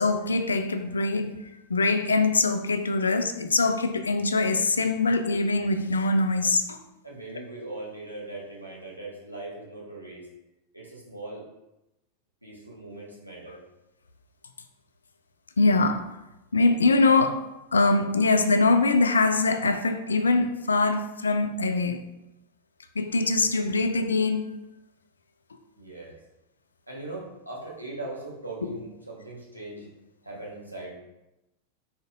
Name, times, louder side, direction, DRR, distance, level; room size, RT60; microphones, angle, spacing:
voice 1, 0.0-1.4 1.7-6.8 15.6-16.0 16.5-17.4 17.7-22.0 23.0-24.6 28.6-28.8, left 3 dB, 75° left, 8 dB, 0.4 m, -23 dB
voice 2, 7.0-10.2 10.7-11.5 12.4-13.6 25.8-26.2 26.9-29.9 30.2-30.9, right 2 dB, 90° right, -5 dB, 1.1 m, -40 dB
4.2 x 3.9 x 2.5 m, 0.94 s
figure-of-eight pair, 90°, 0 cm